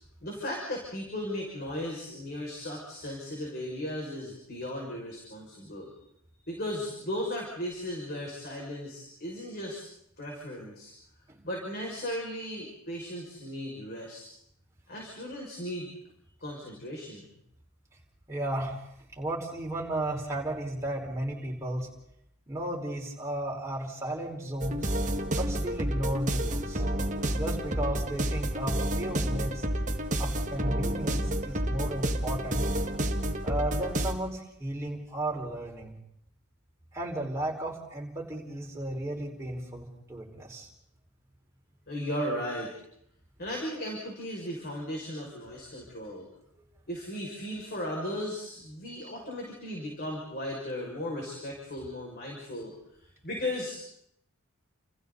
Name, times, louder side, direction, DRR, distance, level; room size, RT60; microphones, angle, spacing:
voice 1, 0.2-5.9 6.5-9.8 10.2-10.9 11.4-14.3 14.9-15.9 16.4-17.3 41.9-42.7 43.4-46.3 46.9-52.7 53.2-53.8, left 1 dB, 45° left, -1 dB, 6.2 m, -36 dB
voice 2, 18.3-18.8 19.1-21.9 22.5-24.9 25.3-26.8 27.3-29.6 30.2-32.7 33.4-35.9 36.9-40.7 46.1-46.2, right 1 dB, 15° right, -2 dB, 5.1 m, -34 dB
sound 1, 24.6-34.1, right 1 dB, 35° right, 1.9 m, -30 dB
30.0 x 29.5 x 4.1 m, 0.73 s
head